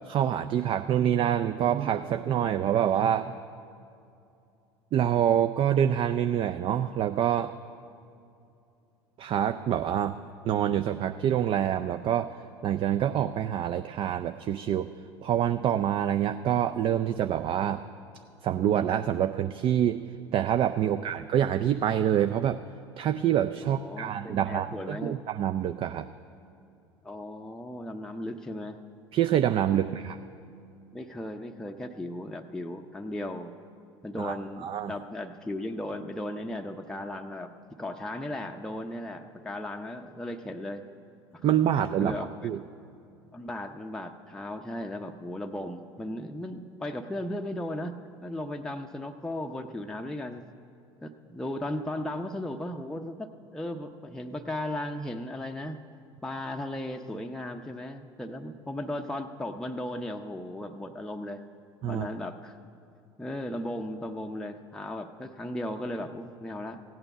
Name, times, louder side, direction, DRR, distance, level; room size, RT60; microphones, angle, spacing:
voice 1, 0.0-3.4 4.9-7.5 9.2-10.2 10.4-12.3 12.6-14.9 15.2-17.8 18.4-20.0 20.3-22.6 23.0-26.1 29.1-30.2 34.2-34.9 41.4-42.2 42.4-42.6 61.8-62.1, right 10 dB, 40° right, 9 dB, 0.4 m, -26 dB
voice 2, 20.8-21.1 23.6-25.2 27.0-28.8 29.8-30.0 30.9-33.5 34.0-37.5 37.8-40.9 41.3-42.5 43.3-47.9 48.2-50.4 51.0-55.8 56.2-61.4 61.9-62.6 63.2-66.8, left 1 dB, 5° left, 3 dB, 0.6 m, -36 dB
15.5 x 8.9 x 6.6 m, 2.6 s
figure-of-eight pair, 70°, 14 cm